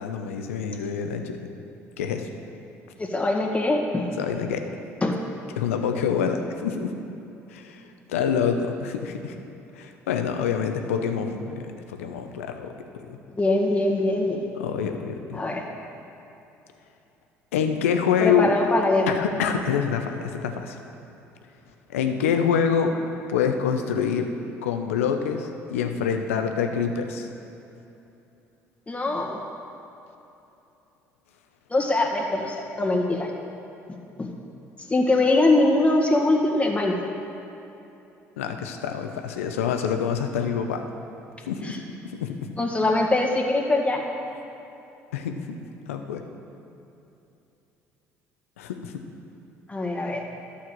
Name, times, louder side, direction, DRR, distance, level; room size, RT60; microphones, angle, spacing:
voice 1, 0.0-1.4 2.0-2.3 4.2-4.6 5.6-7.0 7.5-9.4 9.8-12.7 13.0-13.2 14.5-15.4 17.5-18.5 19.1-20.8 21.9-23.0 23.3-24.3 24.6-27.3 32.9-33.0 38.4-40.8 41.4-41.8 42.0-42.5 45.1-45.6 45.9-46.2 48.6-49.0, left 7 dB, 90° left, 6 dB, 0.7 m, -26 dB
voice 2, 3.0-4.1 5.0-5.2 13.3-14.5 15.3-15.6 18.2-19.1 28.9-29.4 31.7-33.3 34.2-34.3 34.9-37.1 41.6-41.8 42.6-44.0 49.7-50.2, left 2 dB, 20° left, 0 dB, 1.9 m, -22 dB
11.5 x 5.8 x 7.4 m, 2.9 s
hypercardioid pair, 65°, 7 cm